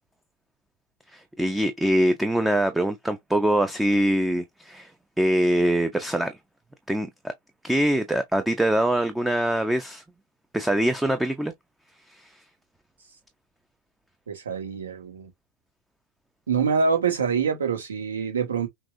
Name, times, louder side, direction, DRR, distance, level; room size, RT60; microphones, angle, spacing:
voice 1, 1.1-4.9 5.2-6.3 6.9-7.3 7.6-10.0 10.5-11.5 12.1-12.3, right 1 dB, 5° right, 0.5 m, -23 dB
voice 2, 14.3-15.3 16.5-18.7, right 5 dB, 70° right, 1.4 m, -25 dB
5.9 x 2.4 x 2.4 m
figure-of-eight pair, 90°, 0 cm